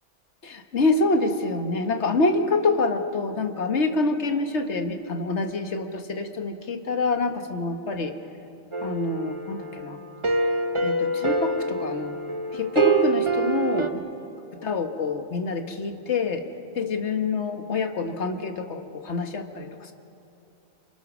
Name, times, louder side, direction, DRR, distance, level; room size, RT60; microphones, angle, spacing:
voice 1, 0.4-8.1 8.8-10.0 10.8-12.2 12.5-14.0 14.6-16.4 16.7-19.9, left 3 dB, 70° left, 6 dB, 1.7 m, -26 dB
sound 1, 8.7-13.9, right 3 dB, 25° right, 1.1 m, -25 dB
28.0 x 27.0 x 6.2 m, 2.8 s
omnidirectional pair, 1.2 m